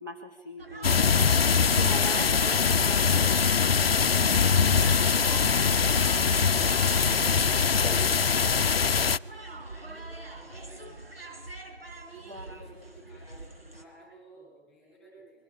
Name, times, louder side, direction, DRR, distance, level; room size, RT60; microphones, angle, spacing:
voice 1, 0.0-1.4 1.7-3.4 12.3-12.7, right 1 dB, 20° right, 2 dB, 1.1 m, -40 dB
sound 1, 0.6-13.8, right 2 dB, 70° right, 4.5 m, -42 dB
sound 2, 0.8-9.2, left 6 dB, 70° left, 0.6 m, -23 dB
voice 2, 4.4-6.6 6.9-11.1 12.1-15.4, right 2 dB, ahead, -4 dB, 7.8 m, -54 dB
25.0 x 23.5 x 4.9 m, 1.2 s
figure-of-eight pair, 175°, 31 cm